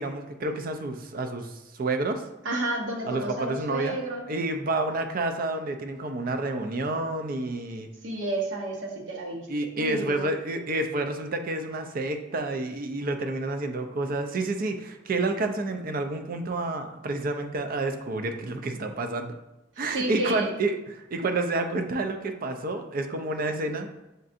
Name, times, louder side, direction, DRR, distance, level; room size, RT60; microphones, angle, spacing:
voice 1, 0.0-2.2 3.1-4.0 4.3-7.9 9.5-19.3 19.8-23.9, right 2 dB, 50° right, 6 dB, 0.4 m, -29 dB
voice 2, 2.4-4.2 8.0-9.5 9.7-10.3 19.8-20.5, right 1 dB, 80° right, 0 dB, 0.8 m, -31 dB
6.5 x 2.5 x 2.5 m, 0.95 s
head